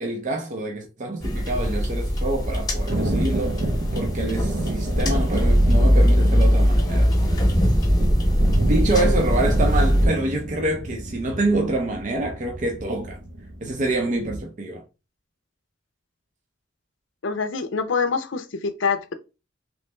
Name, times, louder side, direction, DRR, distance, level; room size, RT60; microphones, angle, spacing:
voice 1, 0.0-3.6 3.9-7.1 8.6-13.2 13.6-14.8, right 2 dB, 40° right, 0.6 m, -26 dB
sound 1, 1.2-10.1, equal, 20° left, 0.9 m, -20 dB
Thunder, 2.9-14.4, right 1 dB, 90° right, 0.9 m, -30 dB
voice 2, 17.2-19.1, left 5 dB, 65° left, 0.5 m, -25 dB
3.1 x 3.0 x 3.2 m
head